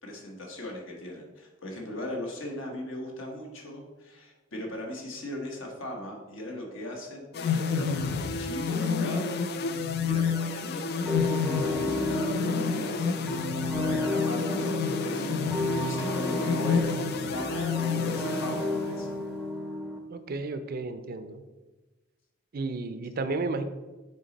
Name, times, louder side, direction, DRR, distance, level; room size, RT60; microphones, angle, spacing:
voice 1, 0.0-9.3 10.0-13.1 13.7-19.1, left 1 dB, 65° left, 0 dB, 1.2 m, -38 dB
sound 1, 7.3-19.2, left 5 dB, 50° left, 0.4 m, -30 dB
sound 2, 11.1-20.0, left 1 dB, ahead, 0.6 m, -32 dB
voice 2, 20.1-21.4 22.5-23.6, right 3 dB, 45° right, 10 dB, 0.4 m, -32 dB
6.5 x 3.9 x 4.0 m, 1.2 s
head